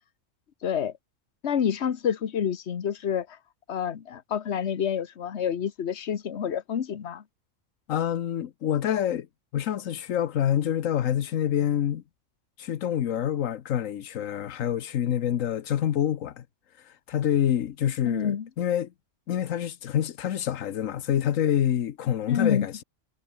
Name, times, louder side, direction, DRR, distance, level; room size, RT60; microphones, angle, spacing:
voice 1, 0.6-0.9 1.4-3.4 3.7-7.2 18.1-18.5 22.3-22.7, left 8 dB, 60° left, 1.4 m, -28 dB
voice 2, 7.9-9.3 9.5-12.0 12.6-16.4 16.8-18.9 19.3-22.8, left 10 dB, 85° left, 1.3 m, -27 dB
omnidirectional pair, 1.3 m